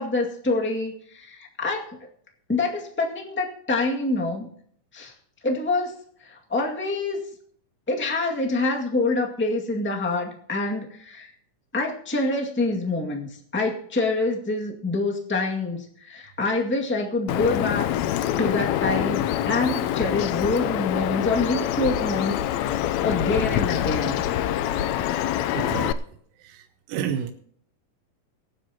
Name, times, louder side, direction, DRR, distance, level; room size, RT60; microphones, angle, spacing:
voice 1, 0.0-1.9 2.5-4.5 4.9-5.1 5.4-5.9 6.2-7.2 7.9-11.3 11.7-17.9 18.4-24.2, left 2 dB, 5° left, 0 dB, 1.2 m, -26 dB
Bird vocalization bird call bird song, 17.3-25.9, left 11 dB, 80° left, 1.6 m, -25 dB
voice 2, 25.5-26.0 26.4-27.3, right 8 dB, 90° right, 8 dB, 2.5 m, -30 dB
24.0 x 9.6 x 2.9 m, 0.63 s
omnidirectional pair, 3.9 m